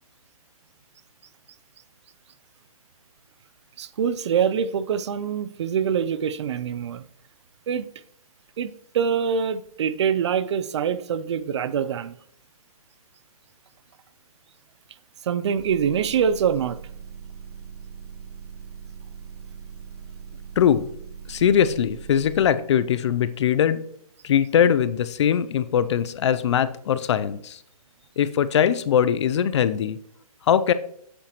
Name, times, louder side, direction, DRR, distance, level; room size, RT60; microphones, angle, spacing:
voice 1, 3.8-7.0 7.7-7.8 8.6-12.1 15.3-16.8, right 7 dB, 50° right, 0.5 m, -24 dB
Motor vehicle (road) / Engine, 15.6-22.5, right 7 dB, 85° right, 2.5 m, -41 dB
voice 2, 20.6-20.9 21.3-23.8 24.2-27.6 28.2-30.0 30.5-30.7, left 9 dB, 50° left, 0.5 m, -21 dB
8.7 x 7.3 x 3.0 m
hypercardioid pair, 145°, 19 cm